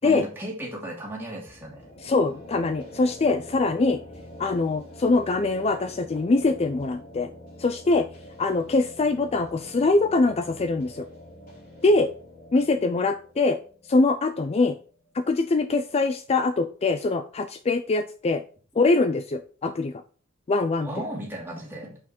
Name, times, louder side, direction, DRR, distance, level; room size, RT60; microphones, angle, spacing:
voice 1, 0.0-1.9 20.8-22.0, right 1 dB, 10° right, -3 dB, 2.6 m, -35 dB
sound 1, 1.5-15.1, left 1 dB, 45° left, 2.9 m, -46 dB
voice 2, 2.0-4.0 4.4-7.3 7.6-8.1 8.4-11.1 11.8-12.1 12.5-13.6 13.9-14.8 15.1-18.4 18.8-19.9 20.5-20.9, left 3 dB, 30° left, 9 dB, 0.4 m, -23 dB
6.5 x 5.9 x 4.3 m, 0.41 s
head